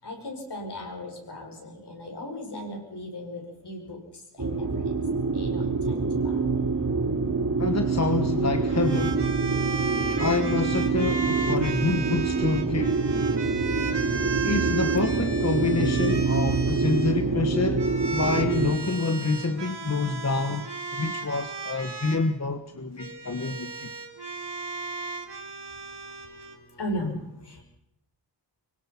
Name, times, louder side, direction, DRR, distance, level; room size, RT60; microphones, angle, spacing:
voice 1, 0.0-4.0 4.4-5.0 5.3-6.4 26.8-27.6, left 1 dB, 65° left, 1 dB, 7.5 m, -37 dB
sound 1, 4.4-18.7, right 4 dB, 45° right, 3.8 m, -26 dB
voice 2, 7.6-9.3 10.2-13.0 14.4-17.8 18.1-23.9, left 3 dB, 35° left, 8 dB, 1.3 m, -27 dB
sound 2, 8.6-17.1 17.8-22.2 23.0-26.6, right 4 dB, 65° right, 3.2 m, -35 dB
25.5 x 24.0 x 5.9 m, 0.76 s
wide cardioid pair, 105°, 43 cm